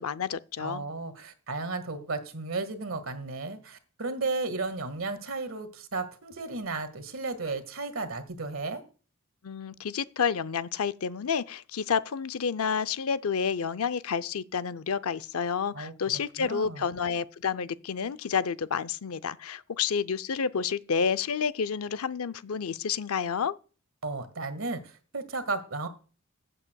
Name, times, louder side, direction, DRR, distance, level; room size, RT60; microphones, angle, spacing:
voice 1, 0.0-0.8 9.4-23.5, left 6 dB, 85° left, 0.6 m, -30 dB
voice 2, 0.6-8.8 15.7-15.9 16.4-16.9 24.0-25.9, right 3 dB, 70° right, 1.8 m, -34 dB
15.0 x 8.5 x 2.3 m
head